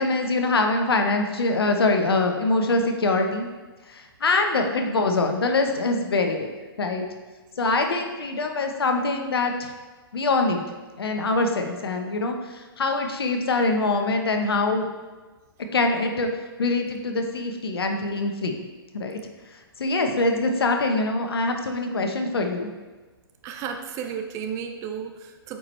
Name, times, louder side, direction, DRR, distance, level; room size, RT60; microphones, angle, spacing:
voice 1, 0.0-3.5 3.9-6.5 6.8-7.0 7.6-9.7 10.1-10.6 11.0-14.9 15.7-16.3 16.6-18.5 18.9-19.2 19.8-22.7, left 3 dB, 70° left, 4 dB, 1.0 m, -24 dB
voice 2, 23.4-25.6, right 7 dB, 25° right, 5 dB, 0.5 m, -33 dB
8.5 x 4.6 x 3.2 m, 1.3 s
figure-of-eight pair, 125°, 13 cm